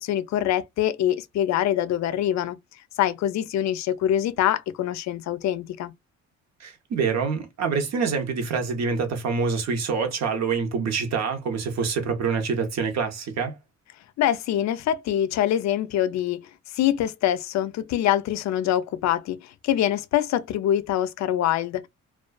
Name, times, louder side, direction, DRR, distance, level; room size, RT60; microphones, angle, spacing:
voice 1, 0.0-2.6 3.0-5.9 14.2-16.4 16.7-21.9, left 11 dB, 65° left, 0.4 m, -24 dB
voice 2, 6.6-13.6, right 5 dB, 60° right, 0.9 m, -26 dB
2.4 x 2.3 x 2.2 m
cardioid pair, 90°, 30 cm